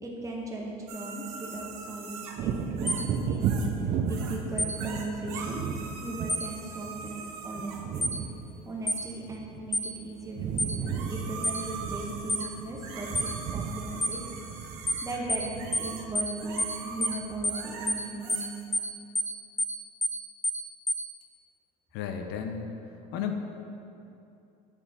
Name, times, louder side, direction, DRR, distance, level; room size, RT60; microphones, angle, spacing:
voice 1, 0.0-3.6 4.0-5.6 6.0-8.1 8.7-14.2 15.0-18.5, right 2 dB, 15° right, -2 dB, 1.1 m, -38 dB
sound 1, 0.9-3.8 4.1-4.4 4.7-8.1 8.9-9.0 10.6-18.8, right 5 dB, 80° right, 0.7 m, -42 dB
Wind / Thunder, 2.3-9.9 10.2-17.4 17.8-18.0, right 6 dB, 45° right, 0.5 m, -35 dB
sound 2, 2.9-3.0 4.6-4.7 6.3-6.5 8.0-8.2 8.9-9.0 9.7-9.9 10.6-10.7 11.4-11.6 12.3-12.5 13.1-13.3 14.0-14.2 14.9-15.0 15.3-15.5 15.7-15.9 16.1-16.3 16.6-16.7 17.0-17.2 17.4-17.6 17.9-18.0 18.3-18.5 18.7-18.9 19.1-19.3 19.6-19.7 20.0-20.2 20.4-20.6 20.9-21.0, left 1 dB, 10° left, 0.4 m, -28 dB
voice 2, 21.9-22.7 23.1-23.4, left 7 dB, 65° left, 5 dB, 0.6 m, -33 dB
7.5 x 3.8 x 3.6 m, 2.7 s
supercardioid pair, 95°, 19 cm